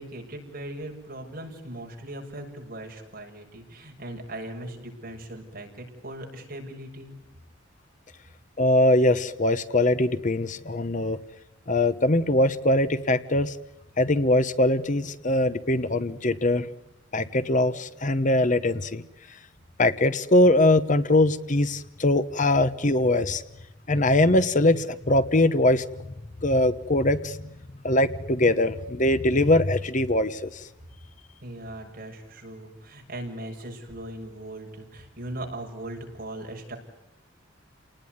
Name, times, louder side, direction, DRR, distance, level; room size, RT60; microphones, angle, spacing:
voice 1, 0.0-7.1 31.4-36.8, right 1 dB, 50° right, 2 dB, 6.8 m, -39 dB
voice 2, 8.6-11.2 11.7-13.6 14.0-16.7 17.1-19.0 19.8-23.4 23.9-26.0 26.4-27.4 27.8-30.7, left 1 dB, 40° left, 13 dB, 1.1 m, -22 dB
30.0 x 19.5 x 9.6 m, 0.94 s
head